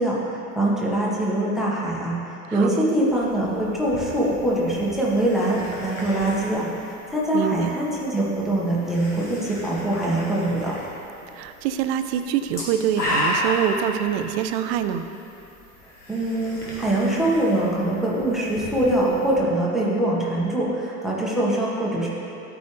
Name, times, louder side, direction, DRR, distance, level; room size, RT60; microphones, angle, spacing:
voice 1, 0.0-10.7 16.1-22.1, right 1 dB, ahead, -6 dB, 1.7 m, -23 dB
voice 2, 2.5-2.8 7.3-7.7 11.3-15.0, right 9 dB, 45° right, 9 dB, 0.6 m, -25 dB
sound 1, 3.1-19.4, equal, 80° left, 1.8 m, -34 dB
13.0 x 4.8 x 3.4 m, 3.0 s
figure-of-eight pair, 75°, 46 cm